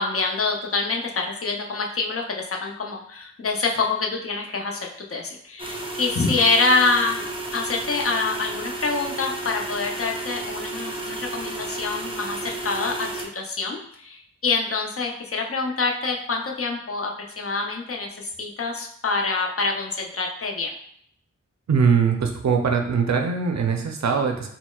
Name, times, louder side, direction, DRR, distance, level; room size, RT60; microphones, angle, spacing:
voice 1, 0.0-7.3 7.5-20.7, left 3 dB, 50° left, 1 dB, 0.6 m, -26 dB
sound 1, 5.6-13.3, right 2 dB, 20° right, 0.5 m, -32 dB
voice 2, 21.7-24.5, right 6 dB, 70° right, 4 dB, 0.5 m, -21 dB
4.2 x 2.0 x 2.3 m, 0.68 s
wide cardioid pair, 70°, 29 cm